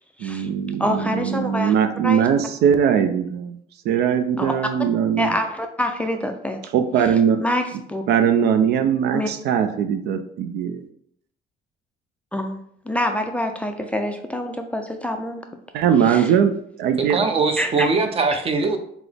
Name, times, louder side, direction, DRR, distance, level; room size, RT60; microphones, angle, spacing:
voice 1, 0.2-3.6 3.9-5.3 6.7-7.4 8.1-10.8 15.7-17.2, right 8 dB, 75° right, 8 dB, 0.4 m, -20 dB
voice 2, 0.8-1.7 2.0-2.3 4.4-4.5 5.2-6.6 7.0-7.1 7.4-7.6 7.9-8.0 9.1-9.3 12.3-15.4 16.0-16.3 17.6-17.9, left 1 dB, 10° left, 5 dB, 0.3 m, -26 dB
voice 3, 17.0-18.8, right 4 dB, 35° right, 6 dB, 0.6 m, -21 dB
5.8 x 2.0 x 3.4 m, 0.69 s
cardioid pair, 110°, 17 cm